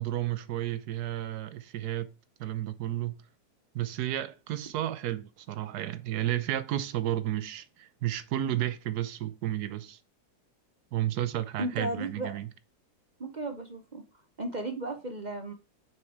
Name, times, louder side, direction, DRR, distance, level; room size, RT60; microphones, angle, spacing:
voice 1, 0.0-2.1 2.4-3.2 3.7-10.0 10.9-12.5, right 13 dB, 75° right, 1.2 m, -32 dB
voice 2, 11.6-12.3 13.2-14.0 14.4-15.5, right 2 dB, 45° right, 0.6 m, -34 dB
6.3 x 4.6 x 4.6 m
omnidirectional pair, 1.8 m